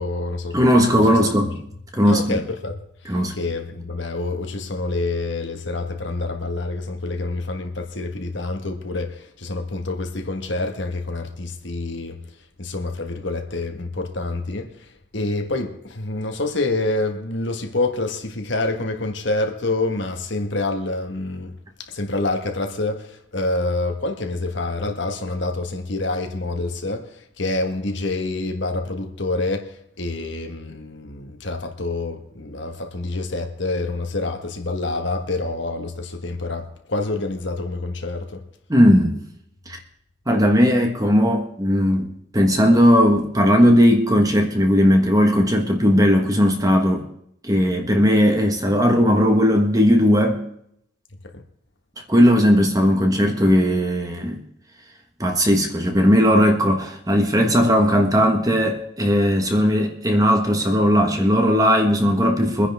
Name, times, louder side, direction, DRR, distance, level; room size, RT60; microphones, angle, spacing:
voice 1, 0.0-1.5 2.0-38.4 51.3-51.4, left 2 dB, 60° left, 1.5 m, -27 dB
voice 2, 0.5-1.5 1.9-2.3 3.1-3.3 38.7-39.2 40.3-47.0 47.4-50.4 52.1-54.4 55.2-62.7, equal, 15° right, 1.5 m, -17 dB
24.0 x 10.0 x 3.6 m
head